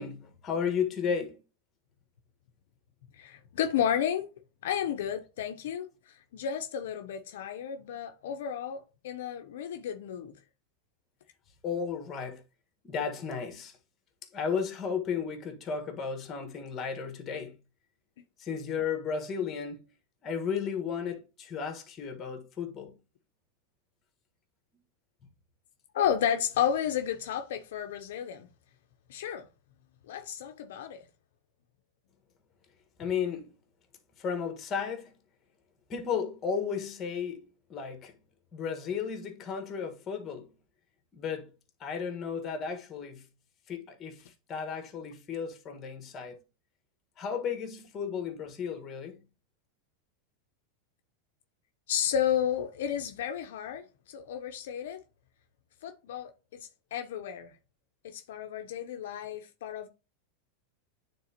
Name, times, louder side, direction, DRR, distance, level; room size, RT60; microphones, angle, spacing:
voice 1, 0.0-1.4 11.6-12.4 12.8-13.8 14.3-17.6 18.4-19.8 20.2-23.0 33.0-33.5 34.2-35.1 35.9-38.1 38.5-40.5 41.1-41.5 41.8-43.3 43.7-46.4 47.2-49.2, left 6 dB, 25° left, 1.4 m, -34 dB
voice 2, 3.2-4.3 4.6-10.3 25.9-28.5 29.1-29.5 30.1-31.0 51.9-55.0 55.8-57.5 58.0-59.9, left 9 dB, 75° left, 0.6 m, -32 dB
9.3 x 3.7 x 2.9 m
supercardioid pair, 135°, 0 cm